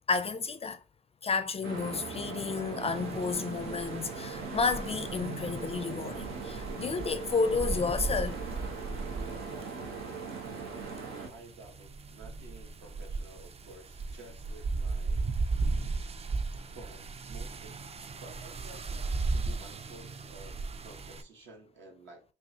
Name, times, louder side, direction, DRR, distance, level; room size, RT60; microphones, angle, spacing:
voice 1, 0.1-0.8 1.2-8.4 15.5-15.9, left 4 dB, 30° left, 0.4 m, -31 dB
sound 1, 1.6-11.3, right 5 dB, 90° right, 1.2 m, -40 dB
sound 2, 2.9-21.2, right 3 dB, 30° right, 0.4 m, -36 dB
voice 2, 11.3-15.2 16.7-17.8 18.2-22.2, right 2 dB, 70° right, 1.5 m, -52 dB
5.2 x 2.4 x 2.8 m
cardioid pair, 90°, 20 cm